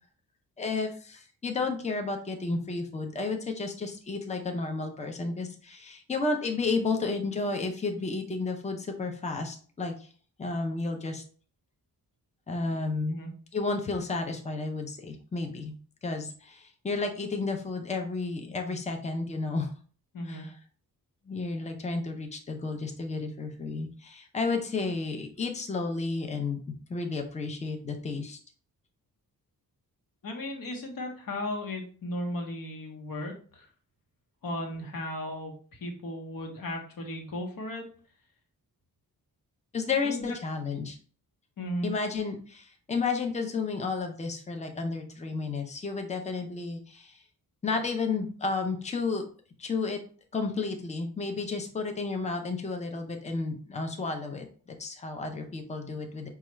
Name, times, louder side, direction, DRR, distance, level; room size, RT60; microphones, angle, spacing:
voice 1, 0.6-9.9 10.4-11.2 12.5-13.1 13.5-15.7 16.0-19.7 20.2-20.5 21.3-26.6 26.9-28.4 39.7-41.0 41.8-47.2 47.6-49.2 49.6-50.0 50.3-54.4 54.8-56.3, left 3 dB, 20° left, 4 dB, 0.5 m, -32 dB
voice 2, 20.1-20.5 30.2-33.7 34.4-35.5 35.8-37.8 40.0-40.3 41.6-41.9, left 1 dB, 65° left, 2 dB, 1.1 m, -35 dB
5.6 x 2.4 x 3.1 m, 0.43 s
wide cardioid pair, 160°, 37 cm